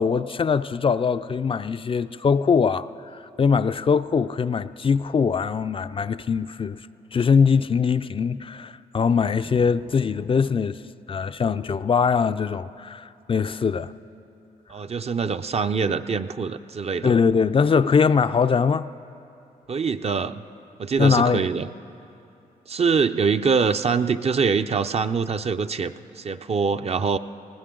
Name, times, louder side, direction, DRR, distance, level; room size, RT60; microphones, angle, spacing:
voice 1, 0.0-6.8 7.1-10.8 11.1-13.9 17.0-18.9 21.0-21.5, left 6 dB, 35° left, 0.4 m, -22 dB
voice 2, 14.7-17.2 19.7-20.4 20.8-21.7 22.7-27.2, right 5 dB, 40° right, 0.5 m, -24 dB
19.5 x 19.0 x 3.8 m
cardioid pair, 65°, 15 cm